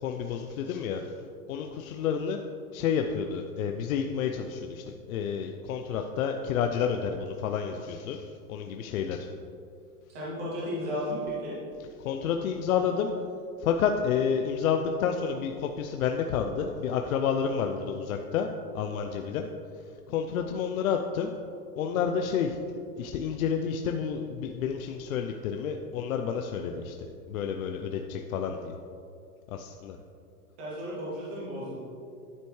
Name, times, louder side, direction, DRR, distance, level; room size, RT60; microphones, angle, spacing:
voice 1, 0.0-1.0 1.5-2.4 2.7-4.8 5.1-8.2 8.5-9.3 12.0-13.1 13.6-18.5 18.7-19.5 20.1-21.3 21.8-22.6 23.0-26.9 27.3-28.7 29.5-30.0, left 7 dB, 65° left, 5 dB, 0.6 m, -29 dB
voice 2, 10.1-11.5 30.6-31.8, equal, 10° right, -7 dB, 0.4 m, -34 dB
10.0 x 7.8 x 3.2 m, 2.5 s
supercardioid pair, 175°, 45 cm